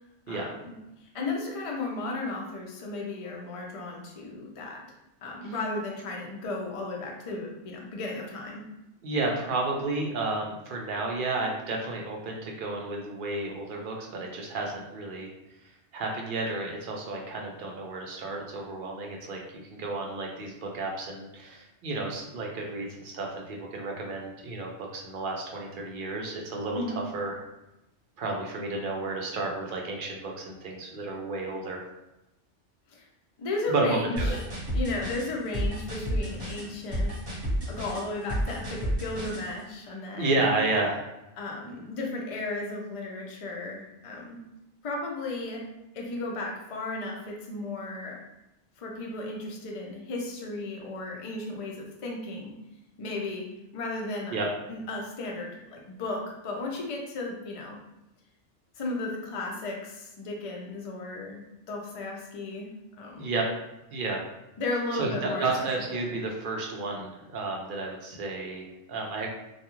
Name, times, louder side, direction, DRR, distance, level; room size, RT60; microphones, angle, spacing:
voice 1, 0.3-0.7 1.1-4.8 5.2-8.6 26.7-27.0 32.9-33.1 33.4-34.4 34.7-37.1 37.7-40.5 41.4-44.4 44.8-45.6 45.9-48.2 48.8-52.5 53.0-53.5 53.7-54.4 54.7-57.8 58.8-62.7 63.0-63.3 64.6-65.7 65.9-66.1, left 2 dB, 60° left, -1 dB, 0.3 m, -35 dB
voice 2, 9.0-15.3 15.9-19.4 19.7-27.3 28.2-31.8 33.7-34.4 40.2-41.1 54.3-54.5 63.2-63.4 63.9-64.3 64.9-69.3, right 2 dB, 60° right, 0 dB, 0.5 m, -31 dB
sound 1, 34.2-39.4, equal, 20° right, 1.0 m, -30 dB
2.3 x 2.3 x 2.9 m, 0.93 s
omnidirectional pair, 1.2 m